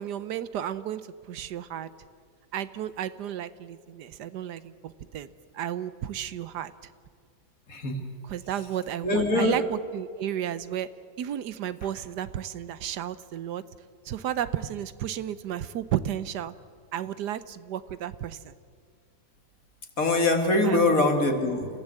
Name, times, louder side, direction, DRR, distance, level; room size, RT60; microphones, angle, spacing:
voice 1, 0.0-1.9 2.5-6.7 8.3-10.9 11.2-13.6 14.0-16.5 16.9-18.5 20.6-21.0, right 10 dB, 75° right, 14 dB, 1.3 m, -33 dB
voice 2, 7.7-8.1 9.0-9.6 20.0-21.7, left 2 dB, 55° left, 4 dB, 2.7 m, -23 dB
28.5 x 16.5 x 7.8 m, 2.1 s
omnidirectional pair, 1.8 m